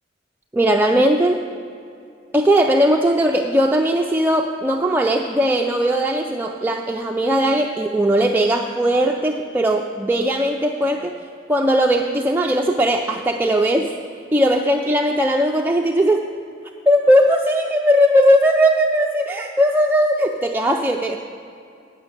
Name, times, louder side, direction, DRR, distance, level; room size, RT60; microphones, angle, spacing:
voice 1, 0.5-1.4 2.3-11.2 11.5-13.9 14.3-16.3 16.9-21.2, equal, 10° right, 1 dB, 0.4 m, -18 dB
9.0 x 6.4 x 8.1 m, 2.5 s
head